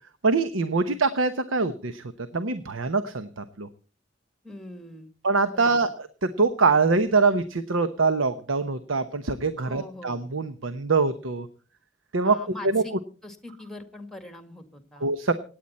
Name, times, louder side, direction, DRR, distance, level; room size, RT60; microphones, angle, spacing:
voice 1, 0.2-2.0 2.3-3.7 5.2-11.5 12.1-12.4 12.6-12.8 15.0-15.3, right 4 dB, 90° right, 10 dB, 1.0 m, -24 dB
voice 2, 4.4-5.1 5.5-5.9 9.6-10.2 12.2-12.9 13.2-15.1, left 2 dB, ahead, 9 dB, 1.9 m, -42 dB
26.5 x 9.2 x 4.3 m, 0.40 s
head